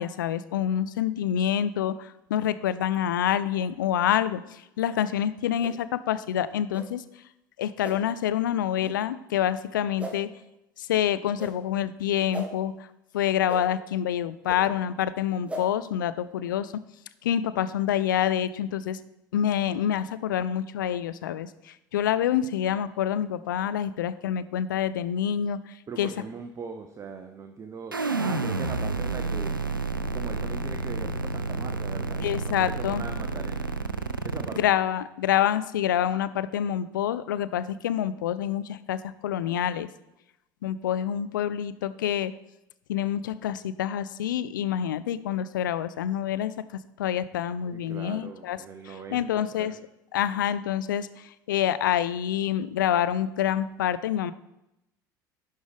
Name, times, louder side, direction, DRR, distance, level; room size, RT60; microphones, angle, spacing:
voice 1, 0.0-7.0 7.6-10.3 10.8-12.7 13.1-16.7 17.2-19.0 19.3-25.6 26.0-26.1 32.2-33.0 34.6-39.9 40.6-42.3 42.9-46.5 47.0-48.6 48.9-49.7 50.1-54.3, left 10 dB, 70° left, 14 dB, 0.4 m, -27 dB
sound 1, 5.6-5.7 6.7-6.9 7.8-8.0 8.8-8.9 10.0-10.1 11.3-11.5 12.3-12.5 13.5-13.6 14.5-14.6 15.5-15.6, right 1 dB, 10° right, 1.5 m, -36 dB
voice 2, 25.9-29.6 30.0-33.7 34.2-34.6 47.7-49.7, right 5 dB, 25° right, 5 dB, 0.7 m, -40 dB
sound 2, 27.9-34.6, right 3 dB, 90° right, 0.4 m, -30 dB
11.0 x 5.3 x 3.5 m, 0.88 s
figure-of-eight pair, 65°, 11 cm